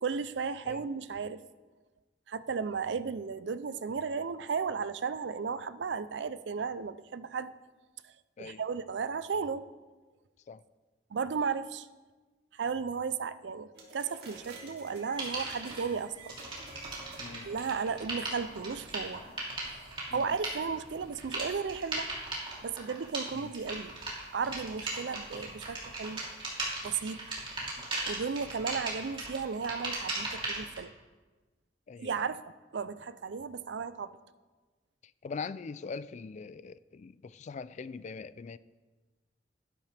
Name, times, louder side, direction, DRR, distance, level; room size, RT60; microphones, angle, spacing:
voice 1, 0.0-1.4 2.3-7.5 8.0-8.1 8.4-9.7 11.1-11.9 12.5-16.3 17.4-19.2 19.9-22.1 22.6-23.9 24.3-26.2 26.8-27.2 28.1-30.9 32.0-32.4 32.7-34.2, right 5 dB, 80° right, 0.5 m, -34 dB
sound 1, 13.7-19.3, right 2 dB, 65° right, 2.5 m, -51 dB
sound 2, 15.2-15.8 16.3-30.8, right 2 dB, 30° right, 3.2 m, -37 dB
voice 2, 17.2-17.5 20.1-20.3 23.3-23.5 27.8-27.9 31.9-32.3 35.2-38.6, left 5 dB, 40° left, 0.3 m, -42 dB
12.0 x 11.5 x 3.4 m
head